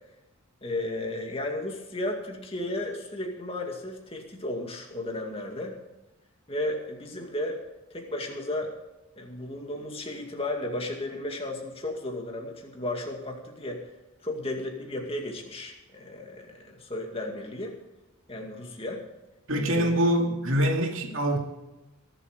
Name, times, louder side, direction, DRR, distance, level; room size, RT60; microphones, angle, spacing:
voice 1, 0.6-5.8 6.5-7.6 7.9-8.7 9.2-13.9 14.2-17.8 18.3-19.0 19.6-20.0, left 1 dB, 25° left, 2 dB, 2.1 m, -34 dB
voice 2, 19.5-21.4, equal, 65° right, 2 dB, 2.4 m, -24 dB
22.5 x 8.0 x 5.0 m, 1.0 s
head